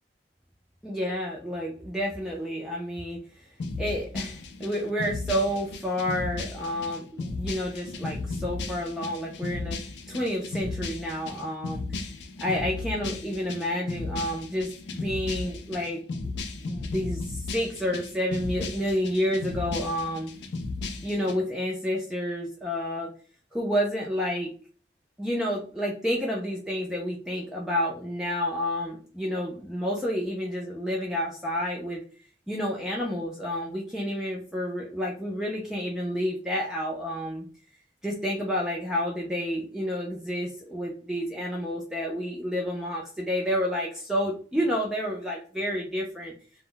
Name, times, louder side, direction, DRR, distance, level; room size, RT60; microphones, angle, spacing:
voice 1, 0.8-3.5 3.8-12.1 12.4-16.3 16.6-20.3 21.0-23.1 23.5-24.5 25.2-32.0 32.5-37.4 38.0-46.3, equal, 5° right, -3 dB, 0.3 m, -30 dB
sound 1, 3.6-21.3, left 3 dB, 80° left, 0.4 m, -35 dB
2.1 x 2.0 x 3.7 m, 0.42 s
head